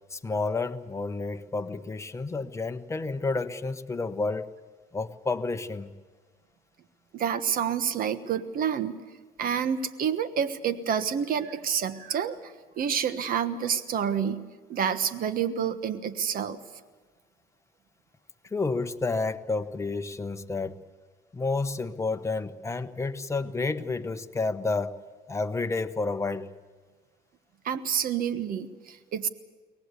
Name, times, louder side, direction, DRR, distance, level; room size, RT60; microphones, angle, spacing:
voice 1, 0.1-4.5 4.9-5.9 18.5-20.8 21.3-25.0 25.3-26.5, left 3 dB, 15° left, 8 dB, 1.0 m, -30 dB
voice 2, 7.1-9.0 9.4-16.6 27.6-29.3, right 8 dB, 55° right, 12 dB, 1.3 m, -28 dB
23.5 x 18.5 x 8.3 m, 1.4 s
cardioid pair, 110°, 17 cm